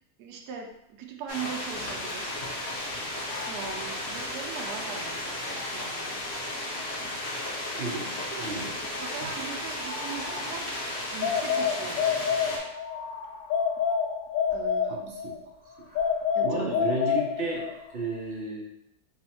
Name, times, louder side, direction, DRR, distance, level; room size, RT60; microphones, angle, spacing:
voice 1, 0.2-2.4 3.5-6.2 6.7-7.2 7.8-8.7 9.0-10.8 11.1-12.0 14.5-15.1 16.3-16.7, right 7 dB, 75° right, 2 dB, 1.1 m, -40 dB
sound 1, 1.3-12.6, left 1 dB, 45° left, 1.0 m, -34 dB
sound 2, 1.7-2.6 3.0-7.4 8.1-14.8 15.5-18.1, left 2 dB, 5° right, 1.3 m, -48 dB
voice 2, 7.8-8.1 8.4-8.6 14.9-15.3 16.4-17.6 17.9-18.6, right 2 dB, 50° right, -2 dB, 0.7 m, -32 dB
sound 3, 11.2-13.0 13.5-15.4 16.0-17.8, left 7 dB, 70° left, 0.8 m, -27 dB
3.1 x 3.1 x 4.3 m, 0.80 s
omnidirectional pair, 1.8 m